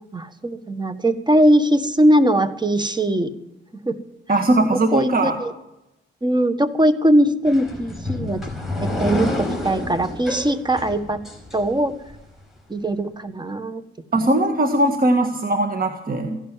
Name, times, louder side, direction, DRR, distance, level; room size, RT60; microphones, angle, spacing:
voice 1, 0.1-3.3 3.8-4.0 4.9-5.5 6.2-8.4 8.8-11.2 11.5-12.0 12.7-13.8, right 1 dB, 20° right, 11 dB, 1.6 m, -20 dB
voice 2, 4.3-5.4 14.1-16.4, right 1 dB, 45° right, 5 dB, 1.8 m, -19 dB
sound 1, 7.4-12.1, left 1 dB, ahead, 5.2 m, -29 dB
16.0 x 11.5 x 7.5 m, 0.88 s
cardioid pair, 65°, 21 cm